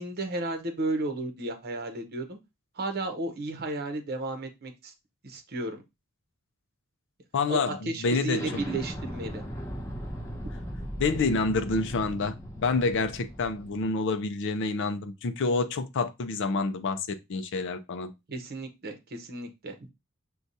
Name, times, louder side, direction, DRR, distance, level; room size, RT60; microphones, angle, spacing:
voice 1, 0.0-2.4 2.7-4.9 5.2-5.8 7.5-9.4 10.4-10.6 18.3-19.7, right 2 dB, 50° right, 0.8 m, -33 dB
voice 2, 7.3-8.5 11.0-18.1, left 3 dB, 55° left, 0.5 m, -28 dB
Explosion, 8.3-13.8, equal, 10° left, 2.4 m, -38 dB
6.1 x 2.3 x 2.6 m
head